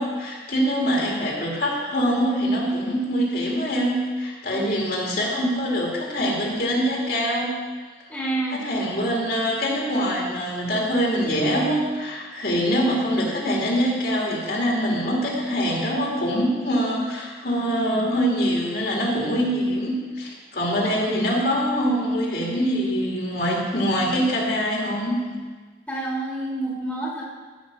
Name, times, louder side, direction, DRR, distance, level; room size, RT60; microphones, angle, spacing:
voice 1, 0.0-7.5 8.5-25.2, equal, 55° left, -3 dB, 2.0 m, -24 dB
voice 2, 8.1-8.6 25.9-27.2, right 2 dB, 5° left, -6 dB, 1.7 m, -28 dB
14.0 x 5.3 x 5.1 m, 1.4 s
head